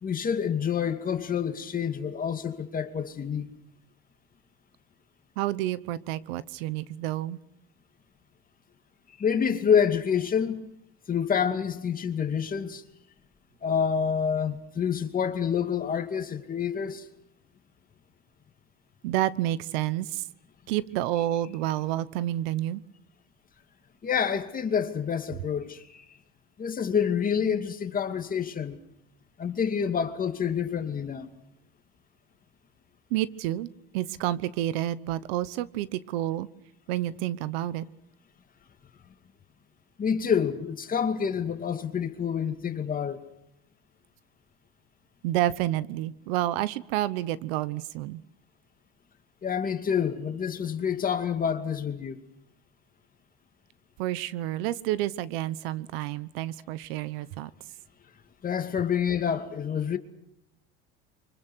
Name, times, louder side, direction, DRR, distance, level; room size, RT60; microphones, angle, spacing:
voice 1, 0.0-3.5 9.2-10.7 11.1-12.8 13.6-17.0 24.0-26.0 26.6-28.8 29.4-31.3 40.0-43.3 49.4-52.2 58.4-60.0, left 7 dB, 30° left, 2.4 m, -27 dB
voice 2, 5.4-7.4 19.0-20.3 20.7-22.8 33.1-33.7 33.9-36.5 36.9-37.9 45.2-48.2 54.0-57.5, right 14 dB, 85° right, 1.0 m, -29 dB
29.5 x 25.0 x 6.3 m
supercardioid pair, 120°, 29 cm